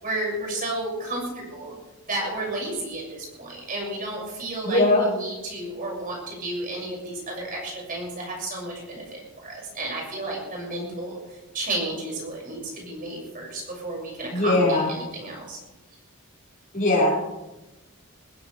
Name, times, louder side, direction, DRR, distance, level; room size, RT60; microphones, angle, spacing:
voice 1, 0.0-1.7 2.1-11.2 11.5-15.6, right 2 dB, 40° right, -2 dB, 6.7 m, -32 dB
voice 2, 4.6-5.0 14.3-14.9 16.7-17.1, left 2 dB, 40° left, -5 dB, 6.0 m, -20 dB
21.5 x 15.0 x 3.5 m, 1.0 s
head